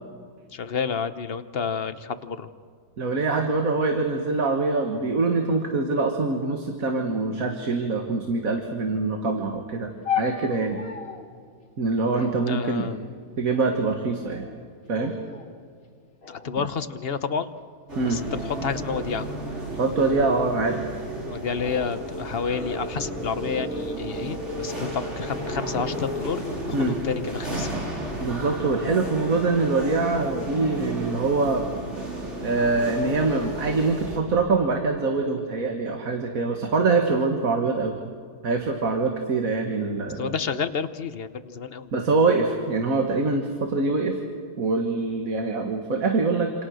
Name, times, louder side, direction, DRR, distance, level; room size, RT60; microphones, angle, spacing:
voice 1, 0.5-2.5 12.5-13.0 16.3-17.5 18.1-19.3 21.2-27.8 40.2-41.9, left 6 dB, 45° left, 11 dB, 1.1 m, -30 dB
voice 2, 3.0-10.8 11.8-12.9 13.4-14.5 14.9-15.2 18.0-18.2 19.8-20.8 26.7-27.0 28.2-31.6 32.4-37.9 38.4-40.3 41.9-44.2 44.6-46.5, right 3 dB, 60° right, 4 dB, 2.0 m, -24 dB
sound 1, 10.0-11.3 12.1-13.3 14.1-14.6 15.0-15.5 16.2-17.5 18.3-18.7, left 7 dB, 60° left, 2.5 m, -35 dB
sound 2, 17.9-34.2, right 1 dB, 45° right, 4.1 m, -33 dB
28.0 x 27.5 x 6.4 m, 2.1 s
omnidirectional pair, 1.7 m